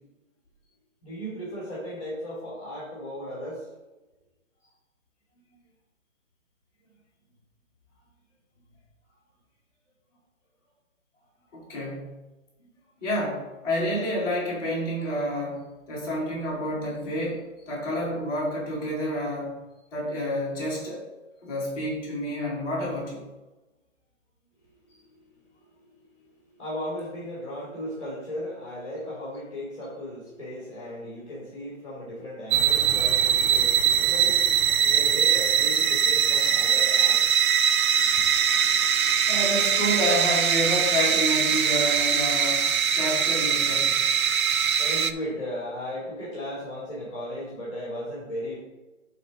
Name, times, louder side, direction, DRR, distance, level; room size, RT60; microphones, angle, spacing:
voice 1, 1.0-3.6 25.0-25.5 25.8-37.3 44.8-48.6, equal, 25° left, -6 dB, 2.5 m, -36 dB
voice 2, 11.5-12.1 13.0-19.6 19.9-21.1 21.4-23.2 38.8-38.9 39.3-43.9, equal, 5° left, -14 dB, 3.0 m, -29 dB
sound 1, 32.5-45.1, right 8 dB, 80° right, 0.8 m, -22 dB
12.0 x 4.2 x 4.1 m, 1.1 s
hypercardioid pair, 175°, 41 cm